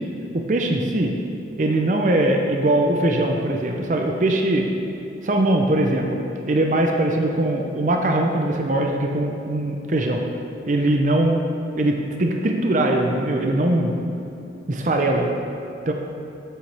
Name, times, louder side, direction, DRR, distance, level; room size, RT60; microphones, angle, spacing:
voice 1, 0.3-1.1 1.6-4.7 5.2-6.2 6.5-10.2 10.7-11.4 11.8-13.9 14.7-15.3 15.9-16.0, right 1 dB, 45° right, 2 dB, 0.6 m, -21 dB
8.0 x 7.8 x 3.4 m, 2.8 s
head